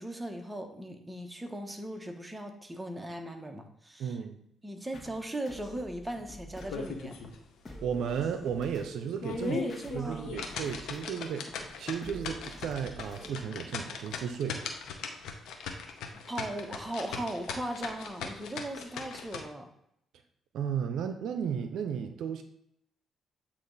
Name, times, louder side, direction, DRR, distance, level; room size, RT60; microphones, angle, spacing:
voice 1, 0.0-4.2 4.6-7.1 9.4-10.3 16.3-19.7, right 1 dB, 10° right, 4 dB, 1.0 m, -38 dB
voice 2, 4.0-4.4 7.8-9.6 9.9-14.6 20.5-22.4, right 7 dB, 75° right, 8 dB, 0.5 m, -34 dB
sound 1, 4.9-13.6, left 1 dB, 35° left, 1.4 m, -48 dB
sound 2, 6.6-7.4 7.7-7.8 8.3-8.4 9.0-19.4, left 5 dB, 80° left, 0.8 m, -39 dB
8.4 x 2.9 x 4.0 m, 0.73 s
cardioid pair, 90°, 0 cm